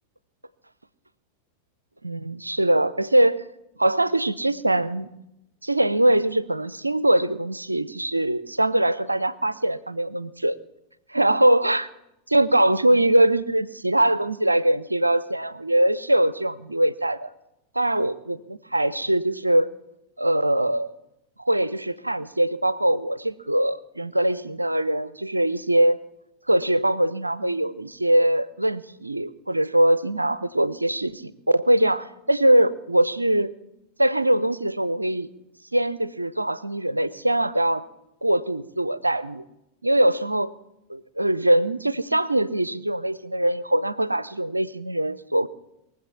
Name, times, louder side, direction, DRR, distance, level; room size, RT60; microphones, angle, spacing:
voice 1, 2.0-3.4 3.8-5.1 5.6-10.6 11.1-11.9 12.3-17.3 17.7-19.7 20.2-20.9 21.4-26.0 26.5-33.5 34.0-35.3 35.7-37.8 38.2-39.4 39.8-40.5 40.9-45.5, right 1 dB, 85° right, 19 dB, 0.5 m, -22 dB
22.0 x 7.8 x 7.0 m, 0.89 s
figure-of-eight pair, 90°, 0 cm